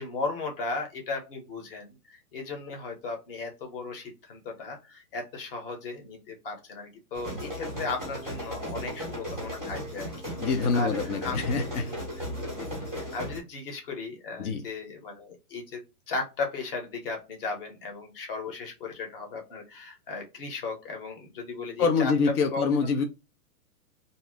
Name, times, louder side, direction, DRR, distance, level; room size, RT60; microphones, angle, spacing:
voice 1, 0.0-11.5 11.8-12.0 12.6-22.1 22.5-22.7, left 3 dB, 40° left, 1.0 m, -36 dB
sound 1, 7.1-13.4, equal, 5° left, 0.8 m, -36 dB
voice 2, 10.4-11.8 14.4-14.6 21.8-23.0, left 4 dB, 75° left, 0.7 m, -25 dB
2.7 x 2.2 x 3.4 m
hypercardioid pair, 175°, 45 cm